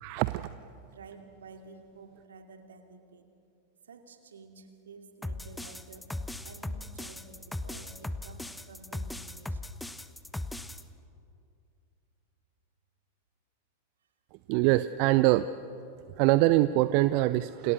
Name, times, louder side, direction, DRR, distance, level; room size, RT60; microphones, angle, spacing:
voice 1, 0.0-0.5 14.5-15.5 16.2-17.7, right 17 dB, 45° right, 14 dB, 0.6 m, -24 dB
voice 2, 0.8-3.3 3.8-6.2 6.4-9.8, right 4 dB, 65° right, 5 dB, 2.7 m, -51 dB
sound 1, 5.2-10.8, left 1 dB, 5° left, 1.0 m, -38 dB
29.0 x 26.5 x 6.6 m, 2.5 s
figure-of-eight pair, 90°, 0 cm